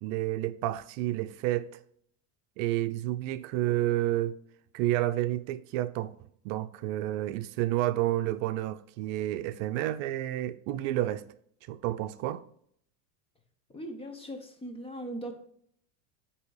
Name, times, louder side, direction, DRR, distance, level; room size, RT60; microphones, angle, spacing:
voice 1, 0.0-1.7 2.6-4.4 4.7-6.1 6.4-11.2 11.7-12.4, right 14 dB, 70° right, 0.6 m, -30 dB
voice 2, 13.7-15.3, right 1 dB, 15° left, 0.9 m, -39 dB
8.2 x 3.0 x 4.7 m
supercardioid pair, 145°, 40 cm